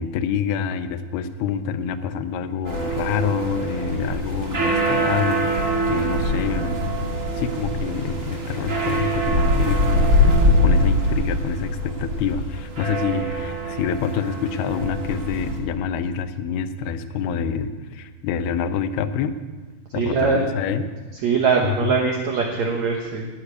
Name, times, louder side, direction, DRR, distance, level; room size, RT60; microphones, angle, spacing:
voice 1, 0.0-19.4 19.9-20.9 21.6-21.9, left 7 dB, 80° left, 11 dB, 2.4 m, -27 dB
sound 1, 2.6-15.6, equal, 40° right, 1.1 m, -23 dB
voice 2, 19.9-20.4 21.2-23.3, right 5 dB, 70° right, 0 dB, 1.7 m, -21 dB
11.5 x 7.5 x 9.5 m, 1.4 s
omnidirectional pair, 4.8 m